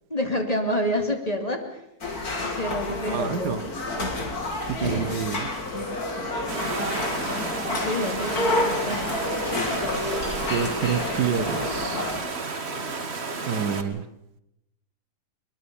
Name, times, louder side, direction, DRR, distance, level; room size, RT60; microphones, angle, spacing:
voice 1, 0.1-1.6 2.4-3.6 4.8-5.2 7.3-9.1, equal, 20° left, 4 dB, 2.9 m, -28 dB
sound 1, 2.0-12.2, left 2 dB, 65° left, 3.4 m, -29 dB
voice 2, 3.1-3.7 4.7-5.5 10.5-12.0 13.4-14.0, right 7 dB, 80° right, 13 dB, 1.7 m, -28 dB
Water, 6.5-13.8, right 4 dB, 40° right, 1.9 m, -32 dB
22.5 x 21.5 x 7.0 m, 0.84 s
omnidirectional pair, 1.7 m